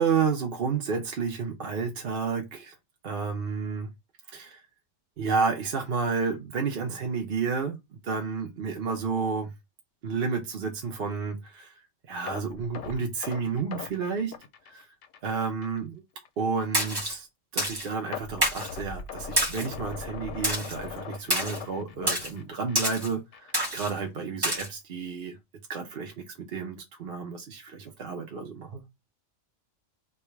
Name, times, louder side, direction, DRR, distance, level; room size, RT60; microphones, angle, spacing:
voice 1, 0.0-2.7 3.0-3.9 4.3-4.6 5.2-9.5 10.0-11.8 12.1-14.3 14.7-14.9 15.2-16.0 16.4-17.3 17.5-25.4 25.7-28.8, right 5 dB, 55° right, 0.8 m, -31 dB
sound 1, 12.3-15.3 15.6-15.8 16.3-16.4 18.1-23.0 23.3-23.5 24.0-24.1, left 6 dB, 70° left, 0.9 m, -40 dB
Splash splatter, 16.7-17.2 17.6-17.9 18.4-18.7 19.4-19.7 20.4-20.8 21.3-21.6 22.1-22.3 22.8-23.1 23.5-23.9 24.4-24.7, right 1 dB, 20° right, 0.9 m, -27 dB
3.4 x 2.3 x 4.4 m
omnidirectional pair, 1.3 m